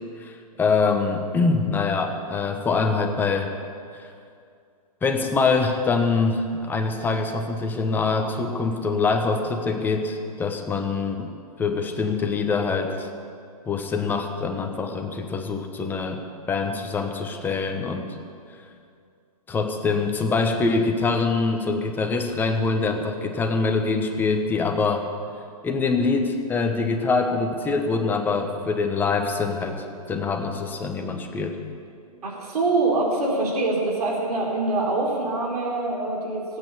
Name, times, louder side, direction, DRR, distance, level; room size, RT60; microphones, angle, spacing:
voice 1, 0.6-3.5 3.9-4.1 5.0-11.3 11.6-13.1 13.7-16.2 16.5-18.1 19.5-25.1 25.6-31.6, left 4 dB, 10° left, 4 dB, 1.1 m, -24 dB
voice 2, 32.2-36.4, right 2 dB, 70° right, -2 dB, 4.1 m, -24 dB
17.5 x 8.8 x 8.4 m, 2.3 s
hypercardioid pair, 150°, 20 cm